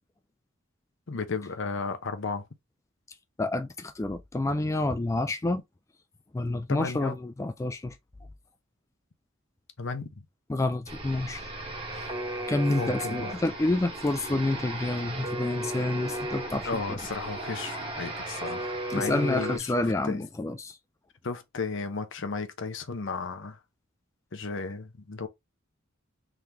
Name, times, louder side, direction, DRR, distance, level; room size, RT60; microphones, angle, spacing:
voice 1, 1.1-2.5 6.7-7.2 9.8-10.2 12.7-13.4 16.6-20.2 21.2-23.6 24.3-25.3, left 4 dB, 65° left, 0.8 m, -34 dB
voice 2, 3.4-5.6 6.3-8.0 10.5-11.5 12.5-17.0 18.9-20.8, left 2 dB, 15° left, 0.3 m, -29 dB
sound 1, 10.9-19.6, right 1 dB, 25° right, 1.1 m, -35 dB
3.7 x 2.9 x 3.3 m
head